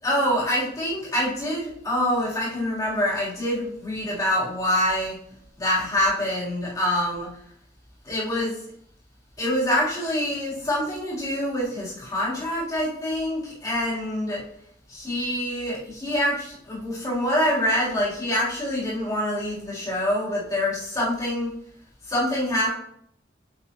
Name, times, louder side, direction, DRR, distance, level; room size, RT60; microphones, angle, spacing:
voice 1, 0.0-5.2 5.6-7.3 8.1-8.5 9.4-14.4 14.9-21.5 22.1-22.7, left 1 dB, 20° left, -9 dB, 3.6 m, -25 dB
8.6 x 7.7 x 3.0 m, 0.72 s
head